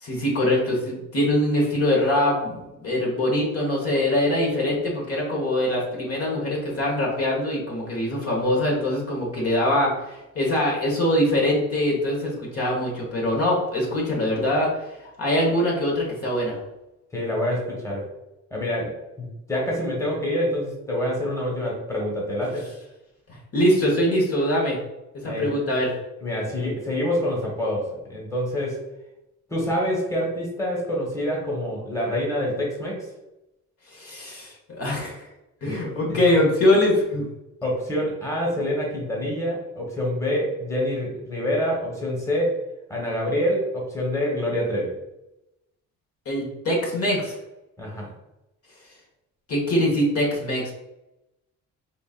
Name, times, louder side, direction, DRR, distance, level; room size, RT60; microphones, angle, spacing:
voice 1, 0.0-14.7 15.2-16.6 23.5-24.8 25.1-25.9 33.9-35.3 35.6-37.2 46.2-47.4 49.5-50.7, left 1 dB, 50° left, -2 dB, 1.3 m, -23 dB
voice 2, 17.1-18.1 18.5-22.7 25.2-25.5 26.2-28.8 29.5-33.1 35.6-35.8 36.1-36.2 37.6-42.6 42.9-44.9 47.8-48.1, equal, 10° left, -2 dB, 1.2 m, -26 dB
5.2 x 2.6 x 2.4 m, 0.94 s
cardioid pair, 90°, 30 cm